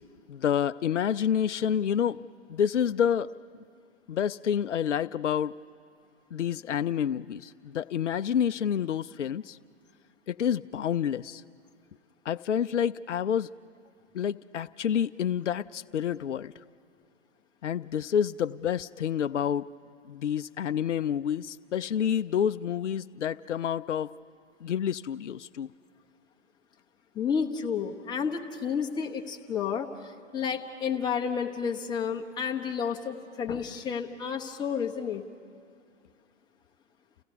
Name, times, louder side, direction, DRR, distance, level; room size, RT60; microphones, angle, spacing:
voice 1, 0.3-3.3 4.1-5.5 6.3-9.6 10.3-11.4 12.3-13.5 14.1-16.5 17.6-19.7 20.1-24.1 24.6-25.7, left 8 dB, 75° left, 12 dB, 0.5 m, -28 dB
voice 2, 27.1-35.2, left 6 dB, 10° left, 2 dB, 1.0 m, -31 dB
30.0 x 17.0 x 5.4 m, 2.4 s
figure-of-eight pair, 120°, 36 cm